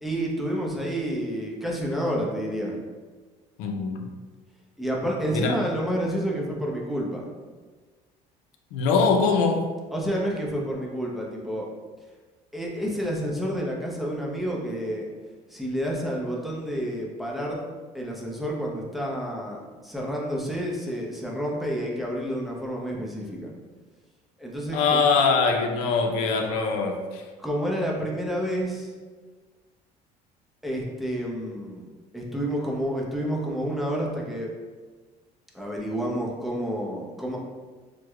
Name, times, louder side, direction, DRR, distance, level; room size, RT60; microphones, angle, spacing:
voice 1, 0.0-2.7 4.8-7.2 9.9-11.7 12.5-15.1 15.5-17.6 17.9-23.5 24.4-25.1 27.4-28.9 30.6-31.9 32.1-34.5 35.5-37.4, equal, ahead, -3 dB, 0.6 m, -29 dB
voice 2, 3.6-4.1 5.3-5.5 8.7-9.7 24.7-27.2, left 4 dB, 90° left, 3 dB, 0.4 m, -23 dB
4.6 x 2.1 x 2.3 m, 1.4 s
cardioid pair, 110°, 16 cm